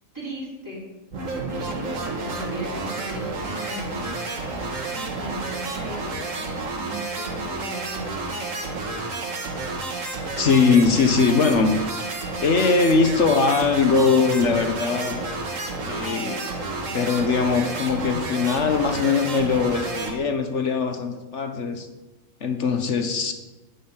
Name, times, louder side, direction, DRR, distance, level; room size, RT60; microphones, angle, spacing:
voice 1, 0.1-0.8 1.4-4.1 4.9-8.3, equal, 15° right, -6 dB, 4.7 m, -38 dB
sound 1, 1.1-20.1, right 3 dB, 65° right, 2.0 m, -30 dB
voice 2, 10.4-11.7 12.4-15.2 15.8-16.4 16.9-21.9 22.4-23.3, left 4 dB, 60° left, 6 dB, 1.4 m, -21 dB
12.5 x 5.7 x 8.6 m, 1.1 s
omnidirectional pair, 1.4 m